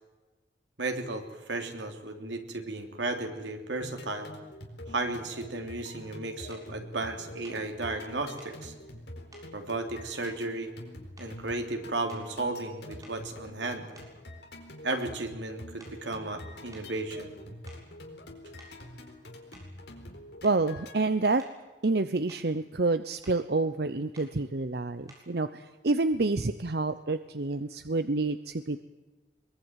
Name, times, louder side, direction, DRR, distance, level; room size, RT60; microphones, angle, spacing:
voice 1, 0.8-4.3 4.9-8.7 9.5-10.7 11.2-13.9 14.8-17.3, right 2 dB, 90° right, 5 dB, 3.2 m, -34 dB
sound 1, 3.8-21.0, left 1 dB, 70° left, 4.4 m, -46 dB
sound 2, 6.5-6.7 7.4-7.7 8.4-8.6 9.3-9.5 10.2-10.8 11.2-11.5 12.0-12.4 13.0-14.6 14.9-15.1 15.8-16.1 16.7-16.9 17.5-17.9 18.6-18.8 19.5-19.8 20.4-20.7 21.4-21.7 22.1-22.5 23.2-23.4 24.1-24.4 25.1-25.4, right 1 dB, 20° right, 6.9 m, -55 dB
voice 2, 20.4-21.4 21.8-28.8, right 3 dB, 60° right, 11 dB, 0.8 m, -28 dB
22.5 x 22.0 x 9.2 m, 1.2 s
head